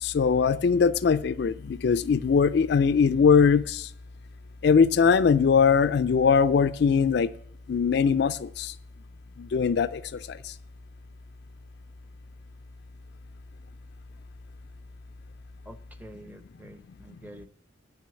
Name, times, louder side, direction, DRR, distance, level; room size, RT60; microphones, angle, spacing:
voice 1, 0.0-3.9 4.6-7.3 7.7-8.7 9.4-10.5, left 6 dB, 55° left, 0.3 m, -21 dB
voice 2, 15.7-17.5, right 1 dB, 10° right, 0.6 m, -47 dB
9.0 x 6.2 x 6.9 m
head